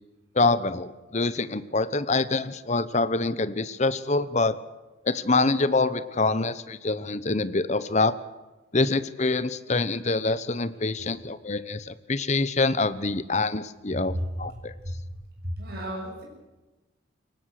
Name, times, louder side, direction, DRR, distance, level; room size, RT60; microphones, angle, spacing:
voice 1, 0.3-4.6 5.0-8.1 8.7-14.7, left 3 dB, 35° left, 14 dB, 1.0 m, -25 dB
voice 2, 15.6-16.2, right 1 dB, 50° right, -1 dB, 6.8 m, -33 dB
23.0 x 19.0 x 6.7 m, 1.1 s
head